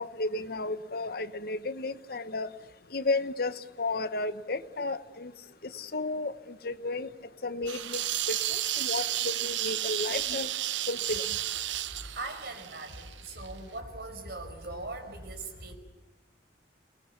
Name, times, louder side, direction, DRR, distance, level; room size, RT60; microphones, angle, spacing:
voice 1, 0.0-2.5 2.9-3.5 3.8-5.3 5.8-6.3 6.6-7.1 7.4-8.0 8.3-10.5 10.9-11.2, left 3 dB, 55° left, 13 dB, 1.0 m, -33 dB
sound 1, 7.7-13.5, right 13 dB, 80° right, 0.8 m, -32 dB
voice 2, 11.9-15.8, right 2 dB, 55° right, 5 dB, 5.1 m, -40 dB
29.5 x 20.0 x 7.0 m, 1.2 s
head